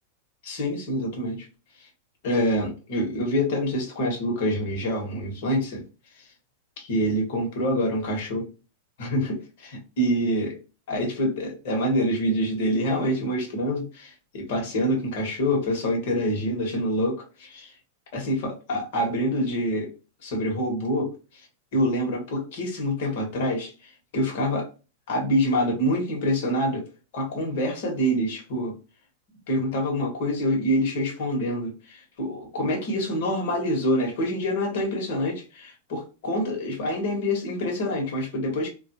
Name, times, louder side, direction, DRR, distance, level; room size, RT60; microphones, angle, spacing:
voice 1, 0.4-1.5 2.2-5.8 6.8-8.5 9.0-10.6 10.9-17.7 18.1-19.9 20.2-21.5 21.7-24.7 25.1-26.9 27.1-28.7 29.5-38.7, equal, 65° left, 1.5 m, -26 dB
3.4 x 2.5 x 2.8 m
hypercardioid pair, 115°, 0 cm